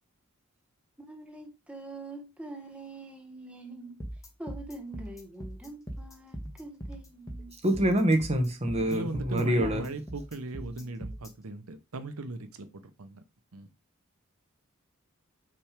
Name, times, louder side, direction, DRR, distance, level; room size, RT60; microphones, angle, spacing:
voice 1, 1.0-4.0 4.4-7.5 9.6-9.9, right 2 dB, 5° right, 1.1 m, -44 dB
sound 1, 4.0-11.3, right 1 dB, 15° left, 1.2 m, -40 dB
voice 2, 7.6-9.9, right 1 dB, 30° right, 1.3 m, -26 dB
voice 3, 8.8-13.2 13.5-13.7, right 2 dB, 90° right, 0.8 m, -38 dB
6.0 x 3.3 x 5.0 m
head